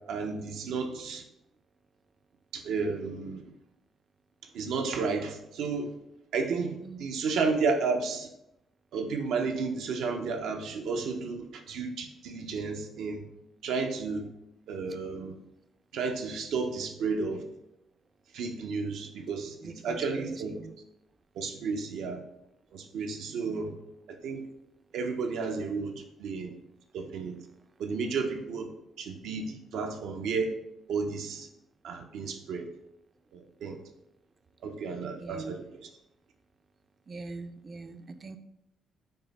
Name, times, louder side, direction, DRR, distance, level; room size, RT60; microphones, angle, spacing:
voice 1, 0.1-1.2 2.5-3.4 4.5-6.0 6.3-8.3 8.9-13.2 13.6-14.3 14.7-15.3 15.9-17.4 18.3-20.6 21.4-22.2 22.7-23.7 24.1-24.4 24.9-26.5 26.9-27.4 27.8-28.7 29.0-30.5 30.9-31.5 31.8-32.7 33.3-33.8 34.6-35.9, right 4 dB, 80° right, 4 dB, 0.6 m, -32 dB
voice 2, 19.6-20.8 23.5-23.7 35.2-35.6 37.1-38.4, right 3 dB, 35° right, 10 dB, 0.4 m, -43 dB
5.3 x 2.0 x 4.0 m, 0.84 s
cardioid pair, 90°, 0 cm